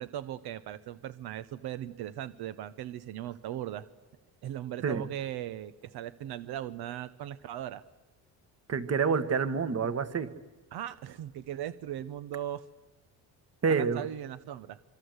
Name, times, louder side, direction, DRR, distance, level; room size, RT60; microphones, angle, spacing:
voice 1, 0.0-3.9 4.4-7.8 10.7-12.6 13.8-14.8, right 11 dB, 80° right, 13 dB, 1.0 m, -38 dB
voice 2, 8.7-10.3 13.6-14.1, right 5 dB, 40° right, 12 dB, 1.7 m, -27 dB
25.5 x 25.0 x 8.1 m, 1.2 s
cardioid pair, 110°, 38 cm